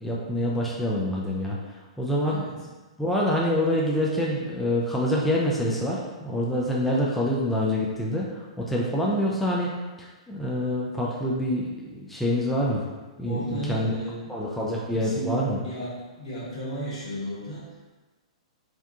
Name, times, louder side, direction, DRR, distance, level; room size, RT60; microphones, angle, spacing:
voice 1, 0.0-2.4 3.0-9.7 10.0-12.9 13.2-14.0 14.3-15.6, left 1 dB, 5° left, -4 dB, 0.3 m, -26 dB
voice 2, 2.2-2.5 13.3-14.3 14.9-17.9, right 1 dB, 75° left, -8 dB, 1.4 m, -34 dB
2.7 x 2.2 x 2.4 m, 1.2 s
hypercardioid pair, 115°, 4 cm